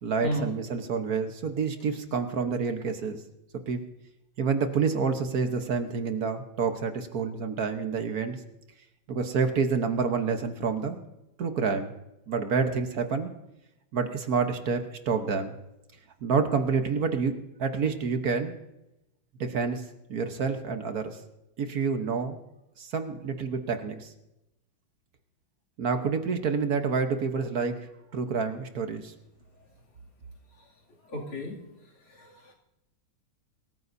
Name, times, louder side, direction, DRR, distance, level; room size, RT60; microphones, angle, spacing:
voice 1, 0.0-3.2 3.7-3.8 4.4-8.4 9.1-11.0 11.4-11.9 12.3-13.3 13.9-15.5 16.2-17.3 17.6-18.5 19.4-19.8 20.1-21.2 21.6-22.4 22.8-24.1 25.8-29.1, right 5 dB, 50° right, 6 dB, 1.4 m, -28 dB
voice 2, 31.1-31.6 32.1-32.5, equal, 80° left, -2 dB, 3.6 m, -33 dB
24.5 x 14.5 x 2.7 m, 0.91 s
omnidirectional pair, 2.3 m